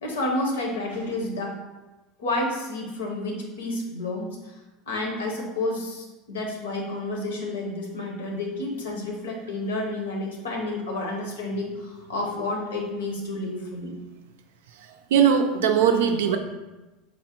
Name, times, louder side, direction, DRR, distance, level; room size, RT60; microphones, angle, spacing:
voice 1, 0.0-1.6 2.2-4.5 4.9-13.9, left 2 dB, 85° left, 0 dB, 0.8 m, -30 dB
voice 2, 14.8-16.4, right 7 dB, 75° right, 6 dB, 0.4 m, -20 dB
3.9 x 2.0 x 4.4 m, 1.1 s
hypercardioid pair, 85°, 0 cm